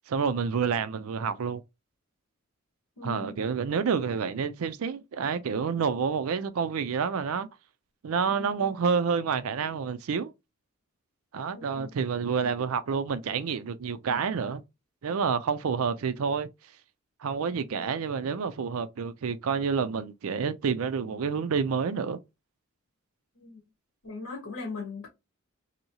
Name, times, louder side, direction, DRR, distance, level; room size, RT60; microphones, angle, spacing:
voice 1, 0.1-1.6 3.0-7.5 8.0-10.3 11.3-14.6 15.0-16.5 17.2-22.2, right 6 dB, 80° right, 0.4 m, -28 dB
voice 2, 3.0-3.3 11.5-11.9 23.4-23.6 24.0-25.1, left 4 dB, 85° left, 0.9 m, -39 dB
2.9 x 2.7 x 2.7 m
head